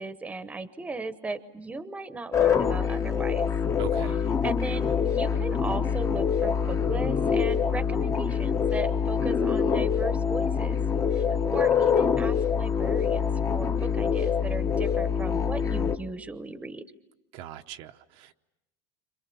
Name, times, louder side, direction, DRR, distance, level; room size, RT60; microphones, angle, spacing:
voice 1, 0.0-3.5 4.4-10.8 11.1-16.8, right 3 dB, 10° right, 1.0 m, -37 dB
sound 1, 2.3-16.0, left 7 dB, 25° left, 1.0 m, -25 dB
voice 2, 3.8-4.3 17.3-18.3, right 12 dB, 65° right, 0.9 m, -40 dB
30.0 x 26.5 x 7.0 m
cardioid pair, 140°, 12 cm